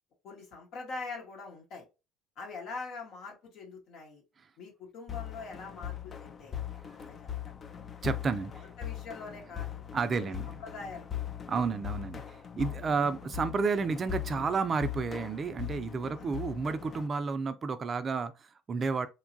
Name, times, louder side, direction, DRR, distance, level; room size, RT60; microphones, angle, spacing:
voice 1, 0.2-1.8 2.4-4.2 4.6-6.6 7.1-7.2 7.4-7.6 8.8-9.8 10.2-10.3 10.6-11.3 12.6-12.7 16.2-16.4, left 4 dB, 60° left, 1.0 m, -43 dB
sound 1, 5.1-17.1, left 10 dB, 35° left, 0.4 m, -40 dB
voice 2, 8.0-8.6 9.9-10.5 11.5-19.1, right 4 dB, 35° right, 0.4 m, -31 dB
3.1 x 2.3 x 2.5 m
supercardioid pair, 80°, 0 cm